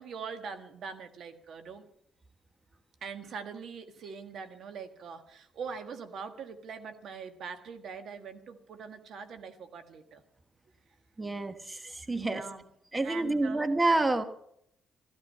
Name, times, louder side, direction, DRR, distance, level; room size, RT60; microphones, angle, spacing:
voice 1, 0.0-1.8 3.0-10.2 12.1-12.6 13.0-13.6, right 6 dB, 70° right, 8 dB, 1.5 m, -42 dB
voice 2, 11.2-12.4 12.9-14.2, right 2 dB, 20° right, 9 dB, 1.2 m, -28 dB
14.5 x 13.0 x 5.6 m, 0.71 s
cardioid pair, 90°, 0 cm